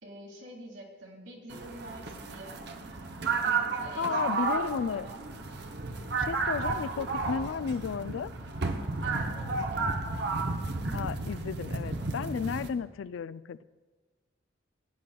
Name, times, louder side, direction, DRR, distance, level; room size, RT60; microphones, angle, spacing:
voice 1, 0.0-2.7 3.4-5.3 9.0-9.9, right 1 dB, 75° right, -1 dB, 2.4 m, -46 dB
sound 1, 1.5-12.7, right 3 dB, 60° right, 0.8 m, -32 dB
voice 2, 4.0-5.1 6.2-8.3 10.9-13.6, left 6 dB, 75° left, 16 dB, 0.3 m, -33 dB
17.5 x 9.8 x 2.3 m, 1.3 s
head